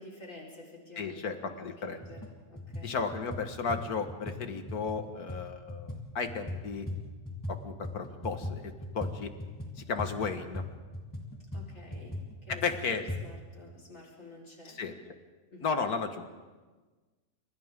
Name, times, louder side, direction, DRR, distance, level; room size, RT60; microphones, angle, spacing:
voice 1, 0.0-3.0 11.5-12.1 12.4-12.8 13.2-14.8 15.5-15.7, left 2 dB, 55° left, -2 dB, 4.7 m, -50 dB
voice 2, 1.0-2.0 2.8-6.9 7.5-9.3 9.9-10.6 12.5-13.0 14.7-15.0 15.6-16.3, left 5 dB, 75° left, 6 dB, 2.0 m, -34 dB
sound 1, 1.4-1.5 2.0-2.3 2.5-7.6 7.8-13.2, left 2 dB, 10° left, 3.4 m, -39 dB
29.5 x 27.0 x 3.7 m, 1.3 s
omnidirectional pair, 1.6 m